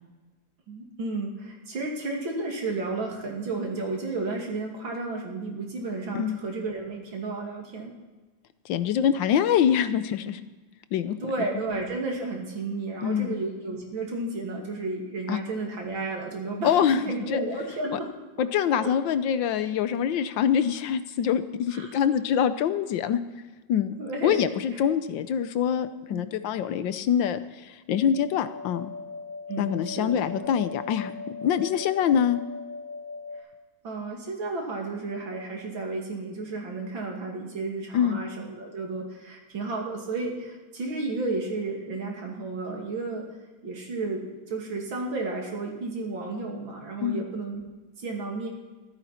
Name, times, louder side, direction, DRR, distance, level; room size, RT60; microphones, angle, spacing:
voice 1, 0.7-7.9 9.1-9.4 11.2-18.1 18.4-18.9 21.7-21.9 24.0-24.5 26.1-26.2 29.5-30.6 33.8-43.2 43.6-47.6 48.0-48.5, right 3 dB, 85° right, 0 dB, 3.3 m, -32 dB
voice 2, 8.6-10.4 10.9-11.3 13.0-13.3 15.3-15.4 16.6-17.0 17.3-17.4 17.9-18.0 18.4-23.2 23.7-23.9 24.2-28.9 29.6-31.1 31.4-32.4 37.9-38.2 47.0-47.2, left 9 dB, 75° left, 12 dB, 1.5 m, -25 dB
sound 1, 28.0-33.4, left 4 dB, 25° left, 4.4 m, -39 dB
14.5 x 13.5 x 4.3 m, 1.2 s
omnidirectional pair, 2.1 m